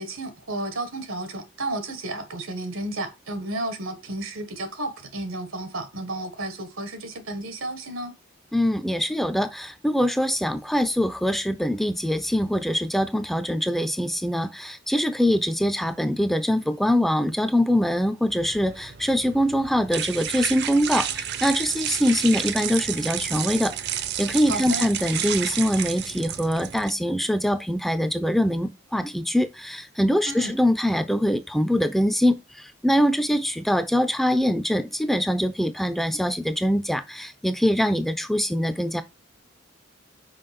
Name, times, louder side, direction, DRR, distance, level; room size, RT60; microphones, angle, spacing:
voice 1, 0.0-8.1 24.5-24.9 30.3-30.6, right 2 dB, 85° right, 1.5 m, -32 dB
voice 2, 8.5-39.0, equal, ahead, 0.4 m, -23 dB
sound 1, 18.3-26.9, right 9 dB, 55° right, 0.7 m, -31 dB
5.6 x 5.0 x 5.1 m
head